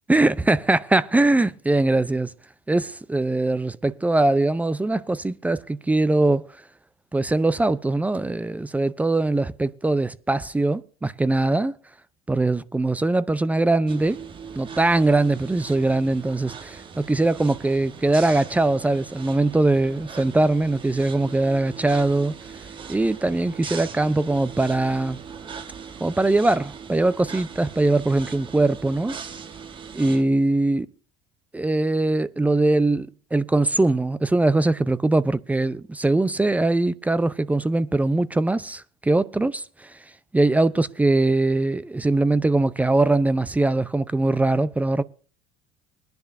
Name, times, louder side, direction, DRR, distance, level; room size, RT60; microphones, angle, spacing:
voice 1, 0.1-2.3 2.7-6.5 7.1-11.7 12.3-14.2 14.6-22.4 22.9-25.2 26.0-29.2 29.9-30.9 31.5-40.0 40.3-45.0, right 2 dB, 10° right, 0.6 m, -21 dB
sound 1, 13.9-30.2, right 6 dB, 40° right, 1.6 m, -40 dB
22.0 x 10.5 x 2.6 m
hypercardioid pair, 80°, 13 cm